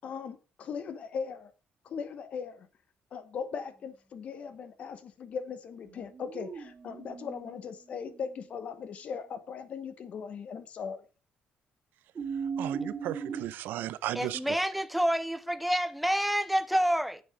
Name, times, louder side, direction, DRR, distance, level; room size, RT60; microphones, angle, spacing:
voice 1, 0.0-1.5 1.8-2.7 3.1-11.0, left 6 dB, 45° left, 1.0 m, -39 dB
sound 1, 5.8-8.5 12.1-13.4, right 6 dB, 30° right, 3.2 m, -38 dB
voice 2, 12.6-14.6, right 13 dB, 80° right, 0.6 m, -35 dB
voice 3, 14.2-17.2, equal, ahead, 0.5 m, -28 dB
8.8 x 7.3 x 5.0 m
cardioid pair, 165°, 3 cm